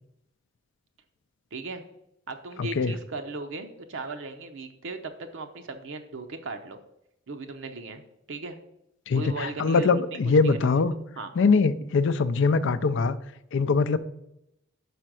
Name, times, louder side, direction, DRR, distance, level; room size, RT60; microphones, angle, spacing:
voice 1, 1.5-1.8 2.3-6.8 7.3-8.0 8.3-8.6 9.1-11.3, right 3 dB, 70° right, 6 dB, 0.7 m, -37 dB
voice 2, 2.6-2.9 9.1-10.9 11.4-13.2 13.5-14.0, left 4 dB, 65° left, 14 dB, 0.4 m, -22 dB
5.5 x 5.1 x 6.1 m, 0.82 s
head